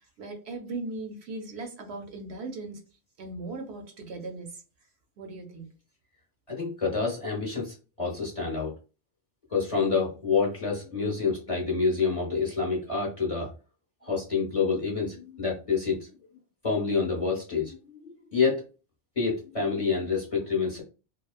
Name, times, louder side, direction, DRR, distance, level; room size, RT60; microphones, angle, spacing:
voice 1, 0.2-2.8 3.2-4.6 5.2-5.7, right 3 dB, 65° right, 0.8 m, -38 dB
voice 2, 6.5-8.7 9.5-13.5 14.0-16.1 16.6-18.6 19.2-20.8, left 5 dB, 35° left, 0.7 m, -28 dB
2.9 x 2.0 x 2.3 m
omnidirectional pair, 1.2 m